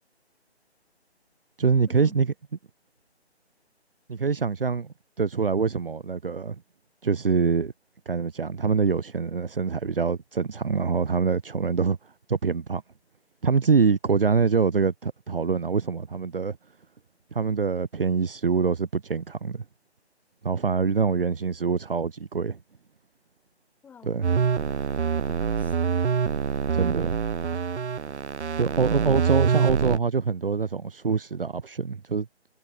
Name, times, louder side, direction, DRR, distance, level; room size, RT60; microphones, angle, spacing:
voice 1, 1.6-2.3 4.1-6.6 7.0-7.7 8.1-12.0 12.3-12.8 13.4-16.6 17.3-19.6 20.4-22.6 24.0-24.3 26.7-27.2 28.6-32.3, right 5 dB, 55° right, 1.1 m, -25 dB
voice 2, 23.8-26.1, left 7 dB, 5° left, 2.2 m, -52 dB
sound 1, 24.2-30.0, right 6 dB, 85° right, 0.6 m, -25 dB
figure-of-eight pair, 150°, 33 cm